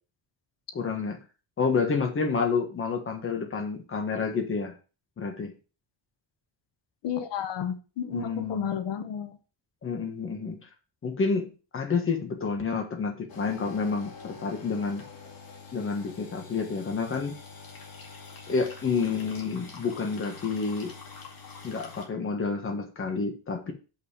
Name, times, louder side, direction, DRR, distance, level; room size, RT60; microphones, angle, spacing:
voice 1, 0.7-1.2 1.6-4.7 5.2-5.5 8.1-8.7 9.8-10.6 11.0-15.0 15.7-17.3 18.5-20.9 21.6-23.7, left 4 dB, 30° left, 4 dB, 1.4 m, -29 dB
voice 2, 7.0-9.4, left 8 dB, 90° left, 10 dB, 1.1 m, -32 dB
sound 1, 13.3-22.0, left 4 dB, 55° left, 2.3 m, -46 dB
6.6 x 5.8 x 4.9 m, 0.34 s
cardioid pair, 170°, 42 cm